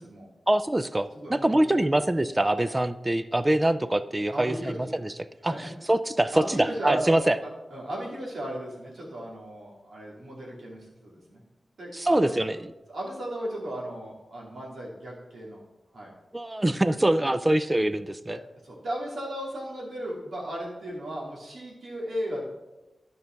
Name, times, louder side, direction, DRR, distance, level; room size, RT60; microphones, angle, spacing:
voice 1, 0.5-5.1 5.4-7.4 11.9-12.6 16.3-18.4, right 1 dB, 20° right, 13 dB, 0.4 m, -24 dB
voice 2, 1.1-1.9 4.3-5.0 5.5-5.6 6.3-11.4 11.8-12.5 12.9-15.6 15.9-16.1 17.2-17.3 18.3-22.4, right 1 dB, 75° right, -4 dB, 2.8 m, -35 dB
11.0 x 5.4 x 4.5 m, 1.0 s
wide cardioid pair, 110°, 0 cm